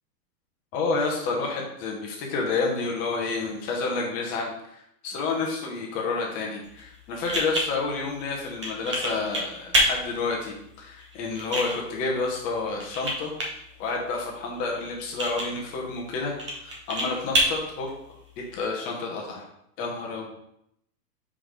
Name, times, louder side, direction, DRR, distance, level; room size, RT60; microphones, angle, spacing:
voice 1, 0.7-13.3 13.8-16.3 16.6-17.9 18.5-19.4 19.8-20.3, left 4 dB, 15° left, -1 dB, 0.8 m, -29 dB
sound 1, 6.6-18.7, equal, 20° right, 0.4 m, -31 dB
4.8 x 3.9 x 5.1 m, 0.76 s
hypercardioid pair, 165°, 50 cm